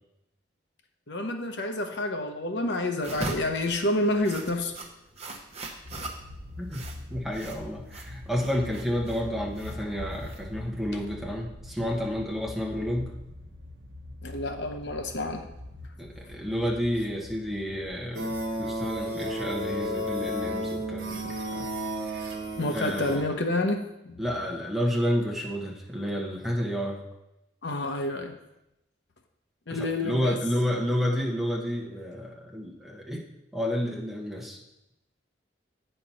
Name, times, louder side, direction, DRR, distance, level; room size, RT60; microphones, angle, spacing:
voice 1, 1.1-4.7 14.2-15.4 22.6-24.2 27.6-28.3 29.7-30.4, left 1 dB, 75° left, 5 dB, 0.8 m, -29 dB
sound 1, 3.0-10.9, right 2 dB, 35° right, 1.0 m, -40 dB
sound 2, 5.8-23.0, left 1 dB, 85° right, 0.8 m, -44 dB
voice 2, 6.6-13.1 16.0-21.7 22.0-22.3 22.7-23.3 24.2-27.0 29.7-33.2 33.5-34.6, equal, ahead, -2 dB, 1.1 m, -30 dB
sound 3, 18.1-23.2, equal, 55° right, 1.3 m, -32 dB
8.7 x 4.5 x 5.6 m, 0.89 s
head